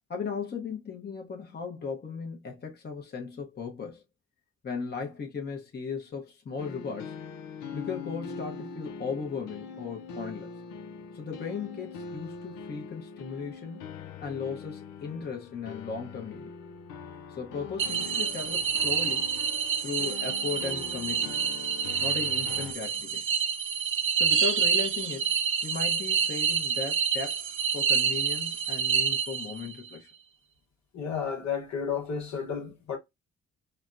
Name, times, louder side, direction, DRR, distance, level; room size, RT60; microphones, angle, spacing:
voice 1, 0.1-4.0 4.6-7.2 7.7-10.5 11.1-13.8 14.2-16.5 17.3-19.3 19.8-21.4 22.0-23.3 24.2-27.5 27.7-30.1, left 5 dB, 35° left, 0.8 m, -36 dB
sound 1, 6.6-22.7, left 5 dB, 90° left, 0.5 m, -42 dB
sound 2, 17.8-29.7, right 7 dB, 45° right, 0.5 m, -28 dB
voice 2, 30.9-33.0, left 6 dB, 65° left, 1.1 m, -32 dB
4.2 x 2.1 x 2.5 m
cardioid pair, 75°, 30 cm